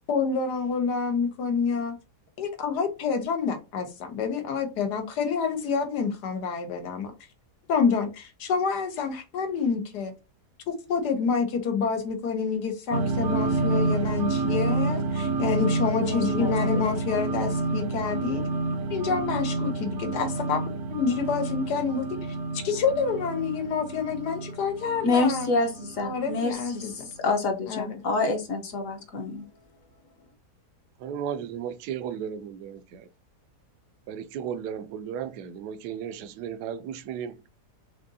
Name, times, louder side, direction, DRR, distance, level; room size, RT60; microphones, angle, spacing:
voice 1, 0.1-1.9 2.4-7.1 7.7-10.1 10.7-18.4 18.9-20.6 20.9-22.3 22.6-25.5 26.0-27.1 27.7-27.9, left 5 dB, 85° left, 1.5 m, -28 dB
sound 1, 12.9-26.9, right 3 dB, 65° right, 0.8 m, -29 dB
voice 2, 16.0-16.8 25.0-29.4, left 3 dB, 60° left, 1.2 m, -28 dB
voice 3, 31.0-33.1 34.1-37.4, right 8 dB, 80° right, 1.1 m, -35 dB
5.1 x 3.6 x 2.7 m
omnidirectional pair, 1.7 m